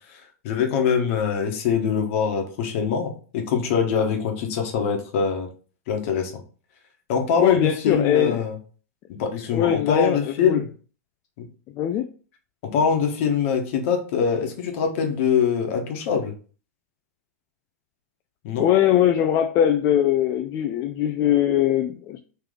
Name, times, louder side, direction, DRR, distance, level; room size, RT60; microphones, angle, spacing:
voice 1, 0.1-5.5 5.9-6.4 7.1-8.6 9.1-10.7 11.4-11.5 12.6-16.3 18.4-18.7, left 6 dB, 55° left, 1.1 m, -23 dB
voice 2, 7.4-8.4 9.5-10.6 11.8-12.1 18.6-22.2, left 11 dB, 35° left, 0.4 m, -21 dB
3.3 x 3.2 x 3.7 m
hypercardioid pair, 100°, 9 cm